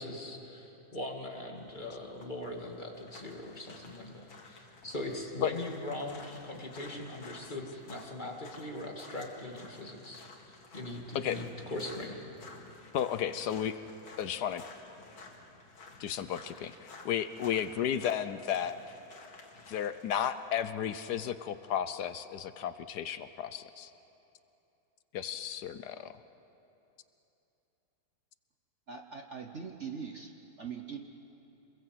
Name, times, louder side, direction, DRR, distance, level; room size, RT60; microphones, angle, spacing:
voice 1, 0.0-10.3 10.7-12.2, left 1 dB, 25° left, 1 dB, 2.4 m, -40 dB
sound 1, 1.5-20.3, left 3 dB, 85° left, 2.9 m, -53 dB
voice 2, 12.9-13.8 14.2-14.6 16.0-18.8 19.7-23.9 25.1-26.2, left 9 dB, 65° left, 12 dB, 1.1 m, -33 dB
voice 3, 28.9-31.0, right 6 dB, 45° right, 4 dB, 1.1 m, -42 dB
27.5 x 21.5 x 7.8 m, 2.9 s
omnidirectional pair, 2.1 m